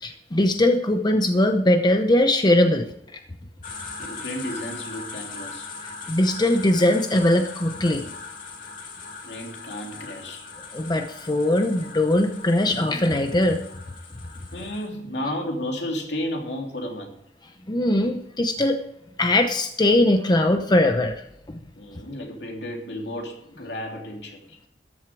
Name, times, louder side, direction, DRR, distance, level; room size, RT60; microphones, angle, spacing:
voice 1, 0.0-2.9 3.1-3.2 6.1-8.0 10.7-13.6 17.7-18.8 19.2-21.2 21.5-21.6, left 1 dB, 25° left, 6 dB, 0.8 m, -20 dB
sound 1, 3.6-14.9, left 4 dB, 50° left, 2.6 m, -39 dB
voice 2, 4.0-5.7 9.2-10.5 14.5-17.2 21.7-24.6, left 1 dB, 70° left, 1 dB, 3.1 m, -33 dB
13.5 x 11.0 x 4.7 m, 0.78 s
head